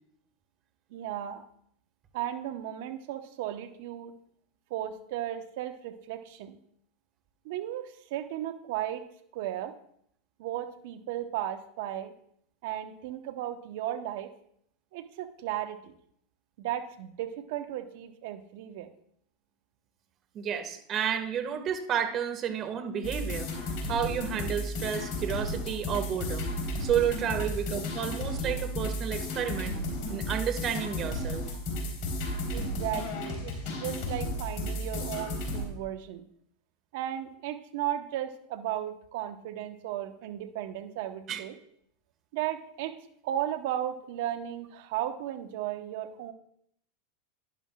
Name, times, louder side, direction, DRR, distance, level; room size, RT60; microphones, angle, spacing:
voice 1, 0.9-1.4 2.1-4.1 4.7-6.6 7.4-9.0 9.3-9.7 10.4-12.1 12.6-14.3 14.9-15.9 16.6-18.9 32.5-36.2 36.9-41.5 42.3-42.9 43.2-46.3, right 12 dB, 65° right, 8 dB, 1.1 m, -35 dB
voice 2, 20.3-26.5 26.8-29.8 30.1-31.4 41.3-41.4, right 8 dB, 40° right, 7 dB, 1.7 m, -31 dB
sound 1, 23.0-35.7, left 1 dB, 55° left, 3.7 m, -33 dB
12.0 x 11.0 x 2.4 m, 0.68 s
hypercardioid pair, 100°, 0 cm